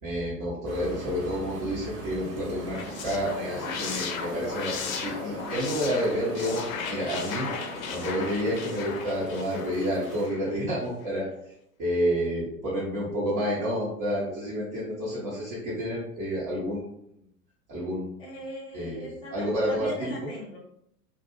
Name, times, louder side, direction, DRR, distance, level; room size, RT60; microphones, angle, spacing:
voice 1, 0.0-6.6 6.9-7.5 7.9-11.5 11.8-16.8 17.7-18.1 18.7-19.9, equal, 30° right, -8 dB, 0.8 m, -29 dB
sound 1, 0.7-10.3, right 1 dB, 55° right, 1.0 m, -42 dB
sound 2, 2.5-10.6, left 5 dB, 60° left, 0.6 m, -36 dB
voice 2, 18.2-20.6, equal, 10° left, -4 dB, 0.5 m, -40 dB
2.3 x 2.2 x 3.0 m, 0.75 s
figure-of-eight pair, 100°, 47 cm